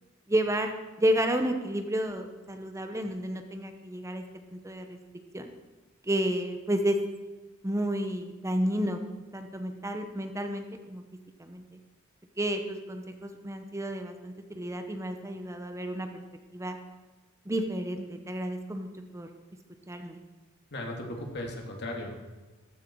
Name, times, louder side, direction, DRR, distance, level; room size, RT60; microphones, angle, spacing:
voice 1, 0.3-0.7 1.0-4.2 4.5-5.0 5.3-5.5 6.0-7.0 7.6-9.0 9.3-11.0 11.4-11.6 12.4-16.2 16.5-16.8 17.5-19.3 19.9-20.2, right 1 dB, 15° right, 6 dB, 1.0 m, -31 dB
voice 2, 20.7-22.3, left 1 dB, 55° left, 1 dB, 2.8 m, -37 dB
14.5 x 14.0 x 4.7 m, 1.2 s
head